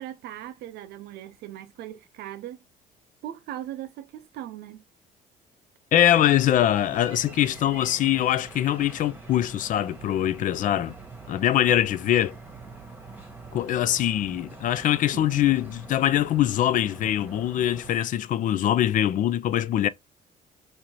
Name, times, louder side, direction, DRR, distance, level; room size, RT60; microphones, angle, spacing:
voice 1, 0.0-2.6 3.2-4.8 15.1-15.5, right 12 dB, 75° right, 0.6 m, -39 dB
voice 2, 5.9-10.9 11.3-12.3 13.5-19.9, left 12 dB, 50° left, 0.4 m, -23 dB
sound 1, 6.1-18.0, right 3 dB, 10° right, 1.2 m, -44 dB
4.5 x 2.6 x 2.8 m
cardioid pair, 110°, 17 cm